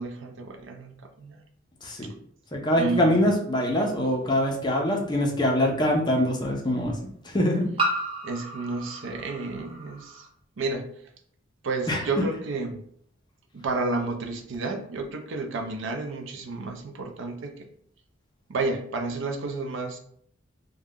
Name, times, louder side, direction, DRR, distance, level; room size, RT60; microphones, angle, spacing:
voice 1, 0.0-1.4 2.7-3.3 8.2-10.3 10.6-10.9 11.6-12.8 13.5-17.7 18.5-20.0, right 3 dB, 65° right, 5 dB, 0.4 m, -31 dB
voice 2, 2.5-7.1 7.3-7.7 11.9-12.0, left 1 dB, 20° left, 1 dB, 0.5 m, -23 dB
sound 1, 3.8-3.9 5.6-5.7 7.8-10.3, right 2 dB, 25° right, 0.7 m, -32 dB
2.4 x 2.1 x 3.4 m, 0.64 s
head